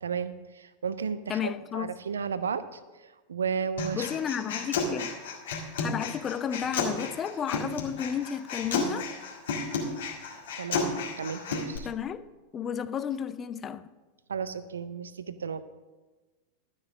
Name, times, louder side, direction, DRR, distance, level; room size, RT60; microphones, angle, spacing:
voice 1, 0.0-4.1 10.6-11.9 14.3-15.6, right 6 dB, 70° right, 0.6 m, -34 dB
voice 2, 1.3-1.9 3.9-5.1 5.8-9.1 11.8-12.2 12.5-13.8, left 8 dB, 25° left, 0.4 m, -32 dB
Human voice, 3.8-11.8, left 4 dB, 60° left, 2.0 m, -32 dB
12.5 x 6.1 x 6.3 m
figure-of-eight pair, 90°, 0 cm